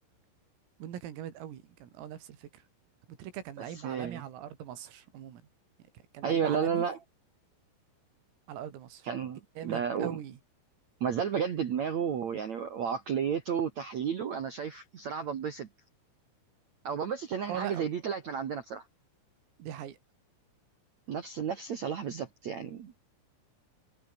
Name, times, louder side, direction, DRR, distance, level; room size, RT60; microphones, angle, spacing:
voice 1, 0.8-2.6 3.1-5.4 6.1-6.9 8.5-9.1 9.6-10.4 17.5-17.9 19.6-20.0, right 10 dB, 90° right, 5.6 m, -41 dB
voice 2, 3.8-4.3 6.2-7.0 9.0-10.2 11.0-15.7 16.8-18.8 21.1-22.9, right 7 dB, 70° right, 1.6 m, -32 dB
omnidirectional pair, 5.9 m